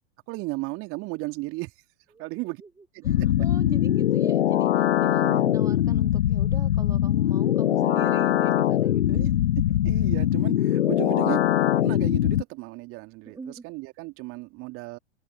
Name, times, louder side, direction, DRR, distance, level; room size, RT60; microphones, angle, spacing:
voice 1, 0.3-1.7 2.2-2.6 2.9-3.3 5.2-5.4 9.2-9.3 9.8-11.4 11.8-15.0, right 23 dB, 40° right, 2.5 m, -35 dB
voice 2, 2.1-2.7 3.0-9.4 13.2-13.6, right 4 dB, 10° right, 1.7 m, -42 dB
sound 1, 3.0-12.4, left 12 dB, 75° left, 0.5 m, -22 dB
open air
figure-of-eight pair, 95°, 34 cm